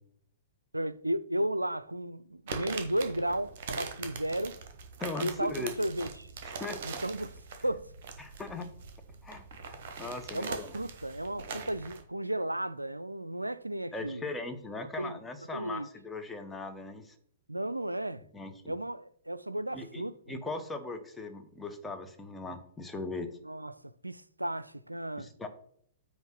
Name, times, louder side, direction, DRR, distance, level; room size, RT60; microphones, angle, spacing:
voice 1, 0.7-4.6 5.2-6.3 6.8-7.9 10.3-14.2 15.0-15.2 15.5-15.9 17.5-18.3 18.7-20.2 23.4-25.3, right 1 dB, 90° right, 0.4 m, -34 dB
sound 1, 2.5-12.0, right 4 dB, 50° right, 1.4 m, -42 dB
voice 2, 5.0-5.7 6.4-7.0 8.2-8.7 9.2-9.4 9.7-10.7 13.9-17.1 18.3-18.7 19.7-23.3 25.2-25.5, left 3 dB, 5° left, 1.0 m, -39 dB
9.1 x 3.0 x 5.7 m
figure-of-eight pair, 110°, 0 cm